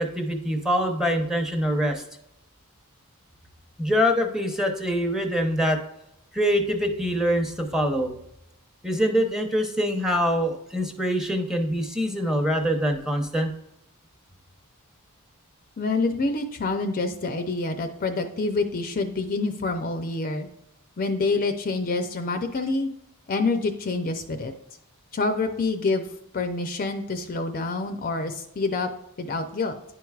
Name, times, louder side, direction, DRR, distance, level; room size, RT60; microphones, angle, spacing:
voice 1, 0.0-2.0 3.8-5.8 6.3-8.1 8.8-13.5, equal, ahead, 4 dB, 0.8 m, -24 dB
voice 2, 15.8-20.5 21.0-22.9 23.3-24.5 25.1-26.0 26.3-28.9 29.2-29.7, left 3 dB, 40° left, 7 dB, 0.5 m, -27 dB
10.0 x 4.6 x 2.3 m, 0.80 s
head